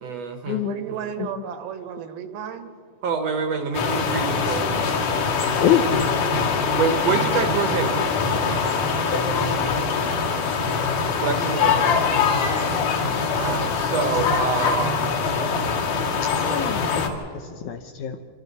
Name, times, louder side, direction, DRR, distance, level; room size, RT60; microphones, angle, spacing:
voice 1, 0.0-1.1 3.0-4.7 6.8-8.0 11.2-12.3 13.4-15.1, right 5 dB, 65° right, 6 dB, 1.7 m, -27 dB
voice 2, 0.6-2.7, right 8 dB, 85° right, 9 dB, 3.1 m, -33 dB
sound 1, 3.7-17.1, left 5 dB, 60° left, 3.4 m, -23 dB
voice 3, 5.6-5.9 16.4-17.2 17.7-18.2, left 10 dB, 80° left, 7 dB, 1.8 m, -24 dB
27.0 x 25.0 x 4.1 m, 2.5 s
omnidirectional pair, 4.2 m